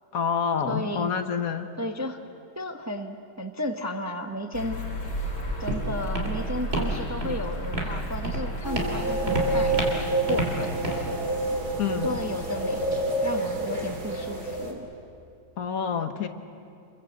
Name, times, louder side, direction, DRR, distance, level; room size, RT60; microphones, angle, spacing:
voice 1, 0.1-1.7 11.8-12.2 15.6-16.3, left 6 dB, 55° left, 8 dB, 1.4 m, -27 dB
voice 2, 0.7-1.1 1.8-2.2 2.6-4.8 5.6-9.9 10.3-11.1 12.0-14.9, left 1 dB, 10° right, 5 dB, 0.9 m, -33 dB
sound 1, 4.5-10.1, equal, 75° left, 3.6 m, -33 dB
Walk footsteps, 5.0-13.0, right 1 dB, 35° right, 3.4 m, -32 dB
sound 2, 8.6-14.7, right 1 dB, 60° right, 3.9 m, -28 dB
27.5 x 22.0 x 8.0 m, 2.5 s
omnidirectional pair, 1.9 m